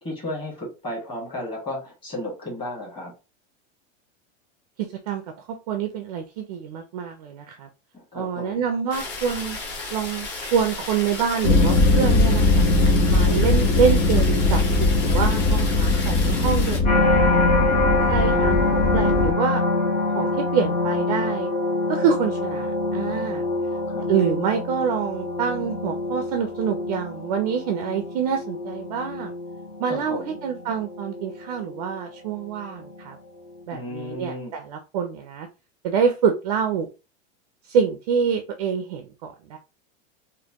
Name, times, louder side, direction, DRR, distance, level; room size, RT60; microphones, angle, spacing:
voice 1, 0.0-3.1 7.9-8.6 13.1-13.4 23.9-24.1 29.9-30.4 33.7-34.5, left 1 dB, 15° left, -2 dB, 1.5 m, -34 dB
voice 2, 4.8-5.2 5.7-7.7 8.1-9.6 9.9-12.6 13.1-14.6 15.0-17.3 18.0-19.6 20.1-21.5 21.9-23.4 24.1-29.3 29.8-33.2 33.7-35.5 35.8-36.9 37.7-39.6, right 7 dB, 35° right, 5 dB, 0.4 m, -26 dB
sound 1, 8.9-16.8, left 3 dB, 30° left, 1.2 m, -34 dB
sound 2, 11.4-19.3, left 2 dB, 75° left, 1.3 m, -20 dB
sound 3, 16.8-32.0 32.6-33.0, left 2 dB, 50° left, 2.1 m, -25 dB
4.3 x 2.6 x 2.8 m, 0.29 s
supercardioid pair, 170°, 35 cm